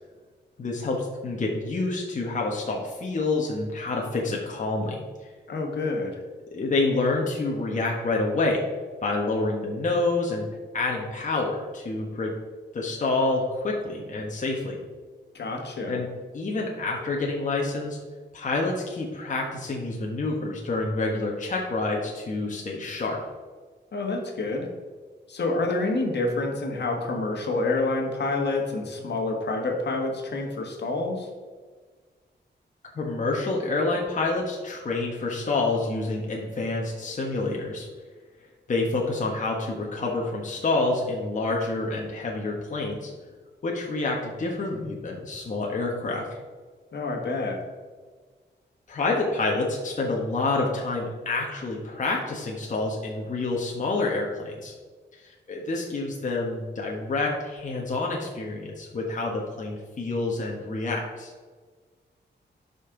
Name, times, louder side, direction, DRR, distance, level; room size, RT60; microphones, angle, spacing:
voice 1, 0.6-5.0 6.5-8.6 9.0-10.4 10.7-12.3 12.7-14.8 15.9-16.1 16.3-18.0 18.3-23.2 32.9-37.9 38.7-43.1 43.6-46.3 48.9-54.7 55.1-61.3, left 3 dB, 45° left, -1 dB, 1.2 m, -28 dB
voice 2, 5.5-6.2 15.3-16.0 23.9-24.7 25.3-31.3 46.9-47.6, left 2 dB, 65° left, 2 dB, 1.6 m, -28 dB
11.5 x 5.4 x 3.8 m, 1.5 s
wide cardioid pair, 145°, 19 cm